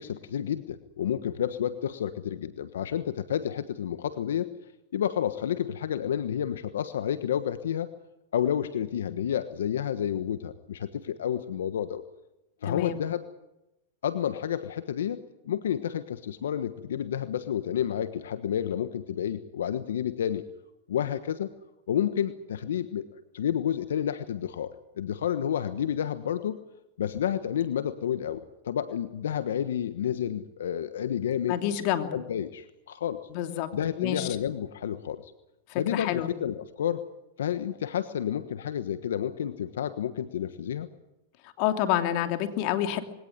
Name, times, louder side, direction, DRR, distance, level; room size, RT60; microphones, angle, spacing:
voice 1, 0.0-4.5 4.9-7.9 8.3-12.0 12.6-13.2 14.0-20.4 20.9-21.5 21.9-23.0 23.3-26.6 27.0-31.6 32.1-33.2 33.7-35.3 35.7-37.1 37.4-40.9, left 9 dB, 80° left, 11 dB, 1.3 m, -30 dB
voice 2, 12.7-13.0 31.5-32.1 33.3-33.7 34.0-34.3 35.7-36.3 41.6-43.0, left 11 dB, 50° left, 7 dB, 2.9 m, -28 dB
22.0 x 18.0 x 9.7 m, 0.92 s
hypercardioid pair, 130°, 0 cm